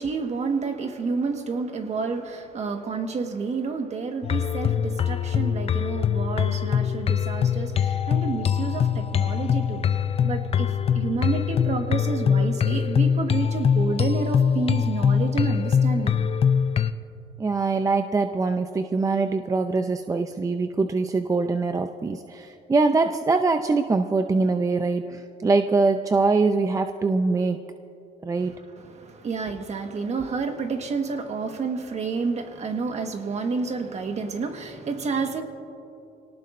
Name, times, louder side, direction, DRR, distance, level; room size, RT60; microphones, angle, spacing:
voice 1, 0.0-9.8 10.2-16.3 28.4-35.4, right 4 dB, 40° right, 5 dB, 1.5 m, -29 dB
sound 1, 4.2-16.9, left 7 dB, 35° left, 0.6 m, -23 dB
voice 2, 17.4-27.6 28.2-28.6, right 3 dB, 20° right, 7 dB, 0.6 m, -23 dB
26.0 x 18.5 x 2.6 m, 2.8 s
cardioid pair, 110°, 17 cm